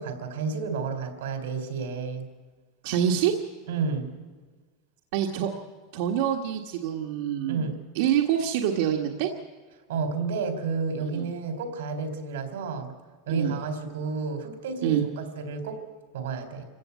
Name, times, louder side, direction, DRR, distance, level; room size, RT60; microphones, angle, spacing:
voice 1, 0.0-2.3 3.7-4.1 7.5-7.8 9.9-12.9 13.3-15.8 16.1-16.6, right 4 dB, 80° right, 7 dB, 3.7 m, -31 dB
voice 2, 2.8-3.3 5.1-5.5 5.9-7.7 7.9-9.3 11.0-11.3 13.3-13.5 14.8-15.0, right 10 dB, 50° right, 2 dB, 1.5 m, -26 dB
26.5 x 16.0 x 8.4 m, 1.4 s
supercardioid pair, 180°, 0 cm